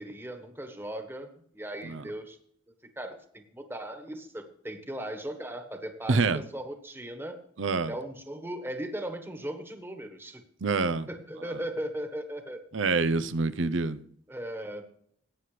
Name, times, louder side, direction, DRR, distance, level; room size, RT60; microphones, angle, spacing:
voice 1, 0.0-2.4 3.0-7.4 7.9-10.4 11.1-12.6 14.3-14.8, right 1 dB, 10° right, 1.4 m, -38 dB
voice 2, 6.1-6.4 7.6-7.9 10.6-11.1 12.7-14.0, right 4 dB, 80° right, 0.7 m, -26 dB
18.0 x 9.3 x 3.3 m
head